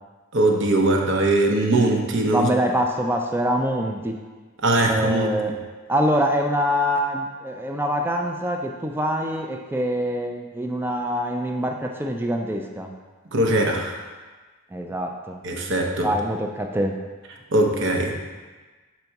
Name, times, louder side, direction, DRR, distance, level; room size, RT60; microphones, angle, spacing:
voice 1, 0.3-2.5 4.6-5.3 13.3-14.0 15.4-16.1 17.5-18.2, right 2 dB, 60° right, 2 dB, 0.8 m, -20 dB
voice 2, 2.3-4.2 4.8-5.6 5.9-12.9 14.7-15.4 16.0-16.9, equal, 10° right, 3 dB, 0.3 m, -24 dB
4.4 x 4.0 x 5.7 m, 1.3 s
head